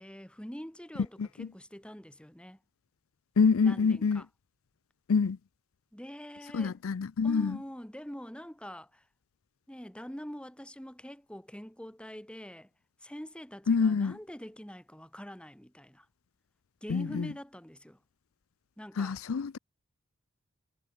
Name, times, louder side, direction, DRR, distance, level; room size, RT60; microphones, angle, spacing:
voice 1, 0.0-2.6 3.6-4.3 5.9-6.8 7.2-9.1 9.7-12.7 13.0-16.1 16.8-18.0 18.8-19.2, equal, 5° left, 3.1 m, -44 dB
voice 2, 3.4-4.2 5.1-5.4 6.5-7.6 13.7-14.1 16.9-17.3 19.0-19.6, left 5 dB, 80° left, 0.5 m, -26 dB
head